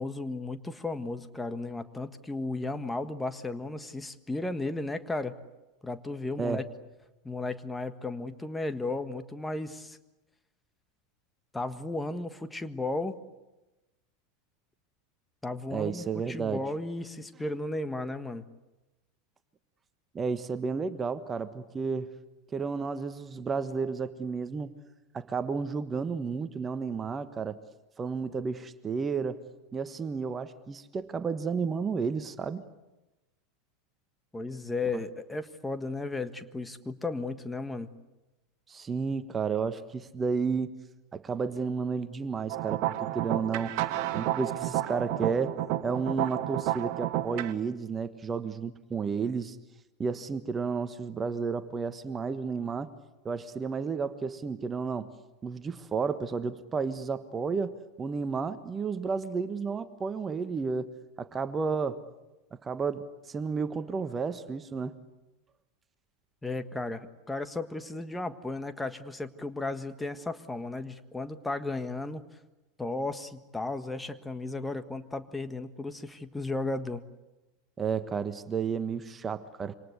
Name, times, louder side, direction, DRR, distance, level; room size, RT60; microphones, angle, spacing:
voice 1, 0.0-5.3 5.8-6.6 7.2-10.0 11.5-13.2 15.4-18.4 34.3-37.9 66.4-72.2 72.8-77.0, left 2 dB, 10° left, 10 dB, 1.5 m, -34 dB
voice 2, 15.7-16.6 20.1-22.1 22.5-24.7 25.1-27.6 28.0-29.4 29.7-32.7 38.7-40.7 41.1-43.8 44.1-49.6 50.0-52.9 53.2-55.1 55.4-60.9 61.2-62.0 62.5-64.9 77.8-79.7, right 5 dB, 25° right, 11 dB, 1.3 m, -32 dB
sound 1, 42.5-47.5, right 14 dB, 55° right, 1.4 m, -31 dB
27.0 x 25.5 x 8.2 m, 1.0 s
figure-of-eight pair, 80°, 0 cm